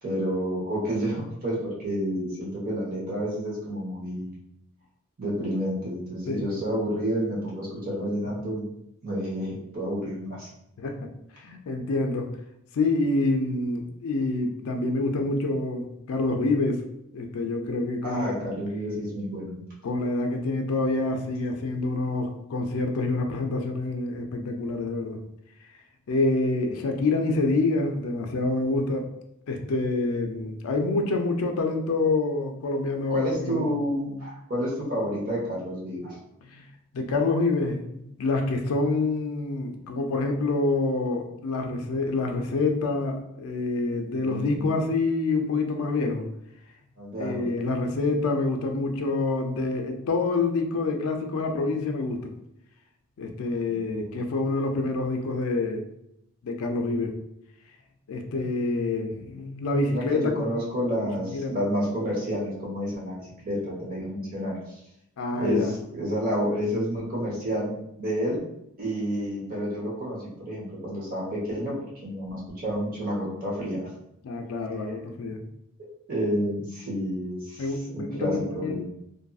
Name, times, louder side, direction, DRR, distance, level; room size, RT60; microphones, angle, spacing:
voice 1, 0.0-4.3 5.2-8.6 9.0-10.5 18.0-19.6 33.1-36.2 44.1-44.7 47.0-47.5 53.6-54.2 59.9-64.8 65.4-68.4 68.8-71.7 72.0-73.9 76.1-78.8, equal, 40° right, -5 dB, 1.0 m, -30 dB
voice 2, 10.8-12.3 12.7-16.8 17.1-18.5 19.8-25.2 26.1-29.1 29.5-33.7 36.4-36.7 36.9-46.3 47.2-52.3 53.2-55.8 56.4-57.1 58.1-60.4 61.3-61.5 65.2-65.8 74.2-75.4 77.6-78.8, left 3 dB, 80° left, 3 dB, 0.4 m, -27 dB
2.5 x 2.5 x 2.3 m, 0.79 s
head